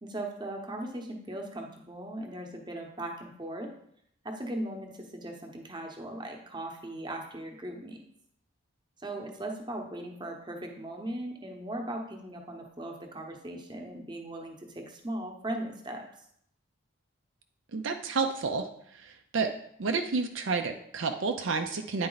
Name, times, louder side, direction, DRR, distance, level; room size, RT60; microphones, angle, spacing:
voice 1, 0.0-3.7 4.2-8.0 9.0-16.1, right 1 dB, 20° right, 2 dB, 0.9 m, -38 dB
voice 2, 17.7-19.5 19.8-22.1, right 4 dB, 65° right, 5 dB, 0.5 m, -30 dB
9.5 x 4.3 x 4.0 m, 0.70 s
head